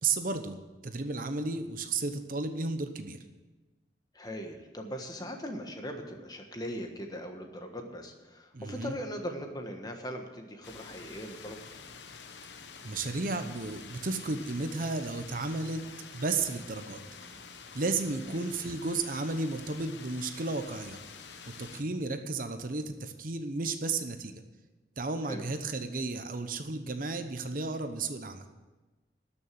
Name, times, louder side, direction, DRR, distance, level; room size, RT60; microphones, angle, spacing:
voice 1, 0.0-3.2 8.5-9.0 12.8-15.8 16.1-17.0 17.7-21.0 21.6-24.4 25.0-28.4, right 3 dB, 50° right, 8 dB, 0.9 m, -33 dB
voice 2, 4.1-11.7 18.2-18.5 25.2-25.4, equal, 20° left, 4 dB, 1.4 m, -40 dB
sound 1, 10.6-21.8, left 5 dB, 80° left, 1.0 m, -48 dB
13.0 x 6.7 x 9.2 m, 1.2 s
head